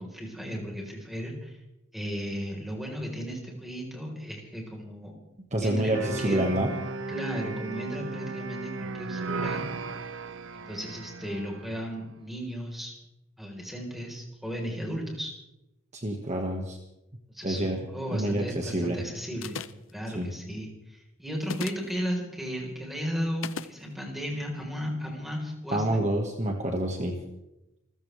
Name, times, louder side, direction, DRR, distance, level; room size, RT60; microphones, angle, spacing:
voice 1, 0.0-1.6 1.9-5.1 5.6-6.4 7.1-9.6 10.5-12.9 13.4-15.3 17.3-19.6 19.9-26.0, equal, ahead, 0 dB, 4.3 m, -35 dB
voice 2, 5.5-6.7 15.9-16.8 17.4-17.8 18.1-19.0 20.1-20.3 25.7-27.2, right 1 dB, 35° right, 2 dB, 1.8 m, -27 dB
sound 1, 5.9-11.9, right 3 dB, 65° right, 0.8 m, -36 dB
sound 2, 19.4-19.9 21.4-21.9 23.4-23.7, left 6 dB, 70° left, 0.7 m, -36 dB
28.0 x 15.0 x 3.5 m, 0.91 s
head